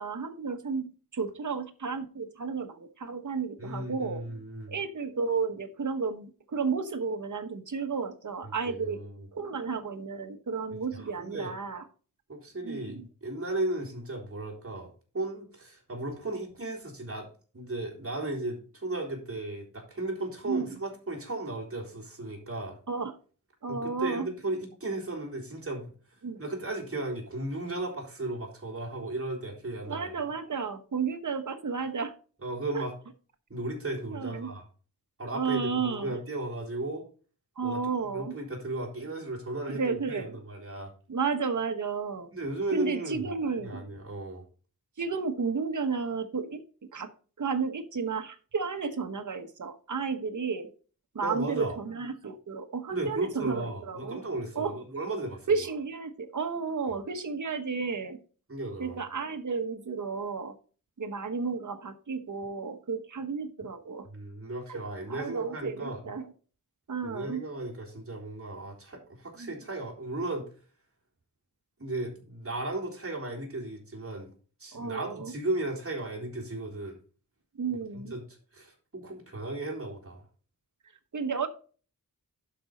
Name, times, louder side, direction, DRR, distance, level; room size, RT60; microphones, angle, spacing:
voice 1, 0.0-4.2 4.7-9.0 9.3-11.8 12.6-13.1 20.4-20.8 22.9-23.2 23.6-24.3 26.2-26.4 29.9-32.1 32.7-32.8 34.1-34.5 35.3-36.2 37.6-38.3 39.7-40.3 41.1-42.3 42.7-43.8 45.0-46.6 46.9-47.1 47.4-50.7 51.1-54.2 54.5-54.8 55.5-58.2 58.8-60.6 61.0-64.1 64.7-64.8 65.1-66.3 66.9-67.4 69.4-69.5 74.7-75.3 77.6-78.1 81.1-81.5, right 5 dB, 60° right, 7 dB, 1.2 m, -32 dB
voice 2, 3.6-4.7 8.4-9.2 10.7-11.5 12.3-14.9 15.1-17.3 17.5-22.8 23.7-25.9 26.4-30.1 32.4-32.9 33.5-34.6 35.2-37.1 37.6-40.9 42.3-43.3 43.6-44.4 51.2-51.8 52.9-55.5 58.5-59.0 64.1-66.0 67.0-70.5 71.8-74.3 74.6-77.0 77.9-80.2, right 2 dB, 40° right, -2 dB, 3.7 m, -35 dB
11.5 x 5.2 x 4.2 m, 0.39 s
wide cardioid pair, 95°, 34 cm